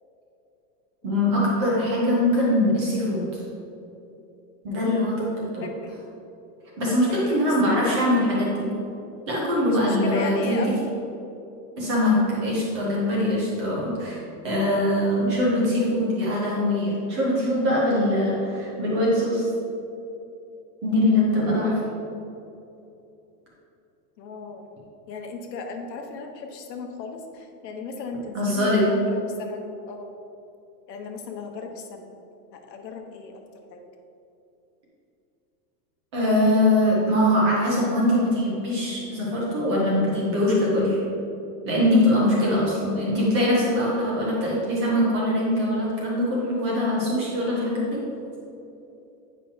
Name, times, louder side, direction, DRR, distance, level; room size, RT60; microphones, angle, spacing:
voice 1, 1.0-3.4 4.6-5.6 6.8-8.7 9.3-10.7 11.8-19.4 20.8-21.7 28.3-28.9 36.1-41.0 41.7-48.0, left 1 dB, 20° right, -5 dB, 0.4 m, -22 dB
voice 2, 5.6-6.0 7.1-7.9 9.6-10.7 21.4-21.9 24.2-24.6 25.1-30.1 30.9-32.1 32.5-33.4 33.7-33.8 42.4-42.5, left 4 dB, 85° left, 4 dB, 1.1 m, -36 dB
8.5 x 5.5 x 2.7 m, 2.8 s
supercardioid pair, 175°, 48 cm